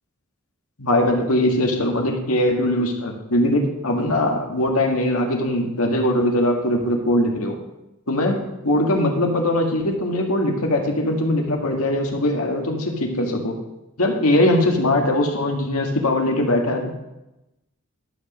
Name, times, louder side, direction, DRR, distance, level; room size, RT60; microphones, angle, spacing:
voice 1, 0.8-7.5 8.1-13.5 14.0-17.0, left 1 dB, 85° left, 1 dB, 1.7 m, -21 dB
12.0 x 5.2 x 6.1 m, 0.95 s
head